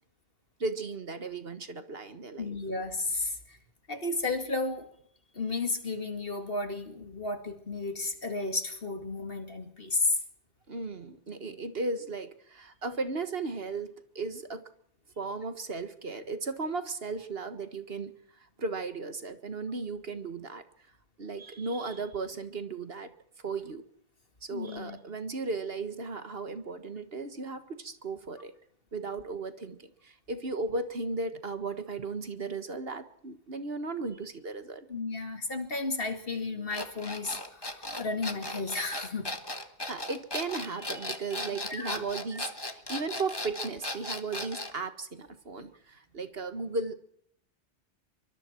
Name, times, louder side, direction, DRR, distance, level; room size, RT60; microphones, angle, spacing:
voice 1, 0.6-2.6 10.7-14.7 15.2-18.1 18.6-20.6 21.2-23.1 23.4-23.8 24.4-28.5 28.9-34.9 39.9-46.9, right 3 dB, 55° right, 10 dB, 1.7 m, -36 dB
voice 2, 2.4-3.6 3.9-4.9 5.3-10.2 24.5-25.0 34.9-39.3 41.7-42.0, left 3 dB, 55° left, 6 dB, 2.6 m, -33 dB
sound 1, 36.7-44.8, left 1 dB, 20° left, 1.6 m, -37 dB
24.5 x 23.5 x 4.5 m, 0.67 s
omnidirectional pair, 1.2 m